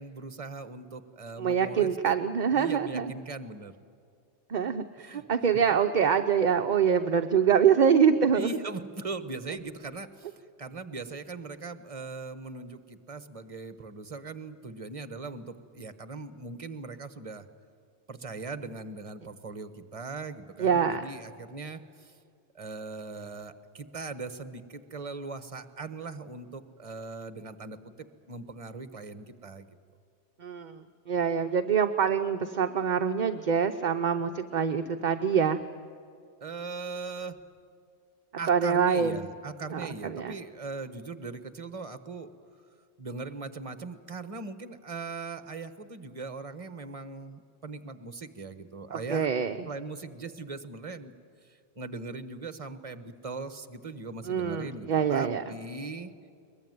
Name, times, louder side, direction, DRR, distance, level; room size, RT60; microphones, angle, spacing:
voice 1, 0.0-1.9 2.5-3.7 5.0-5.2 8.3-17.5 18.1-22.1 22.5-27.9 28.3-29.7 36.4-37.4 38.4-42.3 43.0-49.3 49.7-51.1 51.8-56.1, right 3 dB, 30° right, 11 dB, 1.1 m, -40 dB
voice 2, 1.4-3.1 4.5-8.5 20.6-21.0 30.4-30.8 31.1-35.6 38.5-39.2 39.7-40.4 48.9-49.7 54.2-55.4, right 7 dB, 45° right, 7 dB, 0.7 m, -25 dB
22.0 x 21.0 x 9.5 m, 2.4 s
omnidirectional pair, 1.2 m